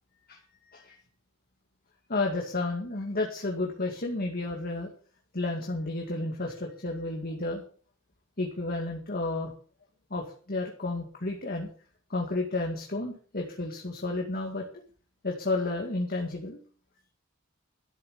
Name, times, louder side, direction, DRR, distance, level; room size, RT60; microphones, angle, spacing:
voice 1, 2.1-4.9 5.3-7.6 8.4-9.5 10.1-11.7 12.1-14.7 15.2-16.6, left 2 dB, 45° left, 1 dB, 2.1 m, -31 dB
12.5 x 7.1 x 8.1 m, 0.42 s
head